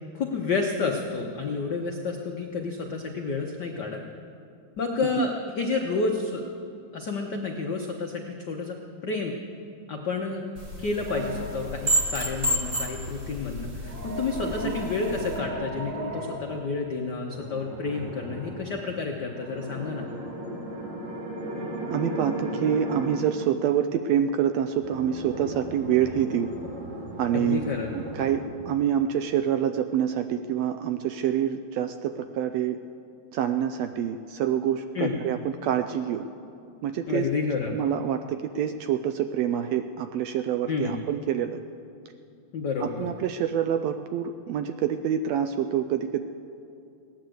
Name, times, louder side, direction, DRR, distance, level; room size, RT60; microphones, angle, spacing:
voice 1, 0.1-4.0 4.8-6.4 6.9-8.8 9.0-9.3 9.9-10.4 10.8-20.1 27.3-27.9 34.9-35.2 37.1-37.7 40.7-41.0 42.5-43.1, left 4 dB, 80° left, 2 dB, 0.9 m, -30 dB
sound 1, 10.6-15.4, right 1 dB, 30° right, 1.3 m, -31 dB
sound 2, 11.1-12.0 13.8-16.4 17.3-18.6 19.3-23.4 24.7-28.4, right 1 dB, 50° right, 3.1 m, -36 dB
voice 2, 14.4-14.7 21.9-26.5 27.2-27.6 27.9-32.8 33.3-36.3 36.8-37.3 37.7-41.6 42.8-46.2, right 9 dB, 80° right, 8 dB, 1.6 m, -26 dB
17.5 x 10.5 x 7.8 m, 2.6 s
omnidirectional pair, 3.3 m